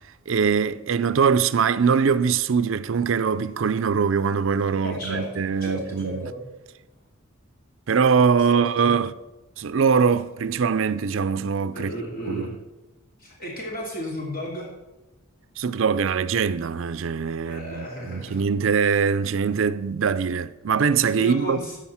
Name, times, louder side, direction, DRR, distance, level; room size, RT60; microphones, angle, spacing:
voice 1, 0.3-6.3 7.9-9.1 9.6-11.9 12.3-12.5 15.6-21.6, right 6 dB, 70° right, 0.5 m, -22 dB
voice 2, 4.8-5.2 5.6-6.4 8.5-8.9 11.7-12.5 13.2-14.7 17.4-18.4 21.2-21.8, equal, 45° left, 2.7 m, -33 dB
15.0 x 5.1 x 5.7 m
head